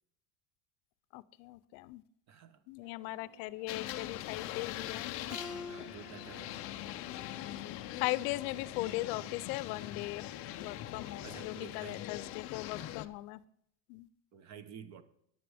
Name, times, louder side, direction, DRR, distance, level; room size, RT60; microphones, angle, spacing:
voice 1, 1.1-2.0 2.7-5.1 7.0-10.3 10.6-13.4 13.9-14.1, left 18 dB, 60° left, 18 dB, 0.7 m, -39 dB
voice 2, 2.3-2.7 5.7-6.5 11.2-12.0 14.3-15.0, right 8 dB, 35° right, 12 dB, 1.0 m, -50 dB
sound 1, 2.8-11.7, right 5 dB, 60° right, 2.3 m, -62 dB
sound 2, 3.7-13.1, left 14 dB, 30° left, 0.4 m, -42 dB
Keyboard (musical), 5.3-8.5, left 3 dB, ahead, 1.5 m, -49 dB
14.5 x 11.0 x 3.5 m, 0.69 s
cardioid pair, 170°, 50 cm